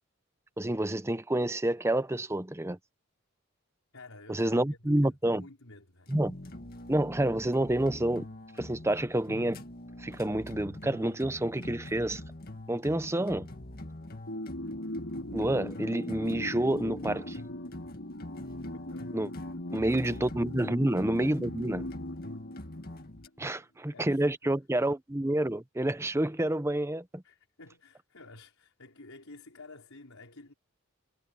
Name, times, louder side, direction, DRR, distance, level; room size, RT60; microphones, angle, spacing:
voice 1, 0.6-2.8 4.3-5.5 6.1-6.3 6.9-8.2 8.6-9.6 10.0-12.2 12.7-13.5 15.3-17.4 19.1-19.3 19.7-21.9 23.4-27.2, right 1 dB, 15° right, 0.7 m, -28 dB
voice 2, 3.9-6.1 18.7-19.3 19.9-20.2 23.4-24.5 27.2-30.5, left 2 dB, 85° left, 4.5 m, -52 dB
sound 1, 6.1-23.3, left 1 dB, 45° left, 2.0 m, -44 dB
sound 2, 14.3-23.3, left 1 dB, 65° left, 5.2 m, -40 dB
head